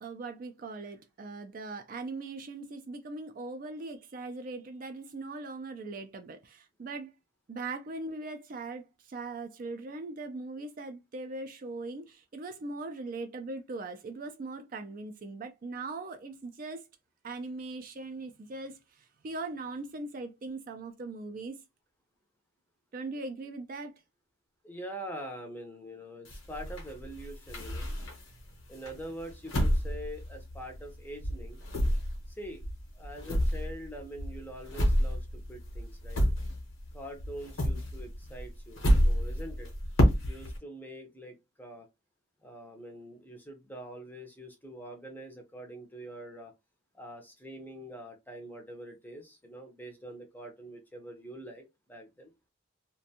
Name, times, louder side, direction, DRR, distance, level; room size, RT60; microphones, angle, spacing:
voice 1, 0.0-7.1 7.5-16.9 17.2-21.6 22.9-23.9, right 3 dB, 40° right, 0.3 m, -40 dB
voice 2, 24.6-27.9 28.7-31.6 32.3-32.6 32.9-36.2 36.9-39.7 40.2-41.9 42.4-46.5 46.9-52.3, right 1 dB, 10° left, 0.5 m, -44 dB
sound 1, 26.3-28.4 28.9-31.0 31.2-36.9 37.2-40.6, equal, 85° left, 0.9 m, -29 dB
2.5 x 2.2 x 2.7 m
head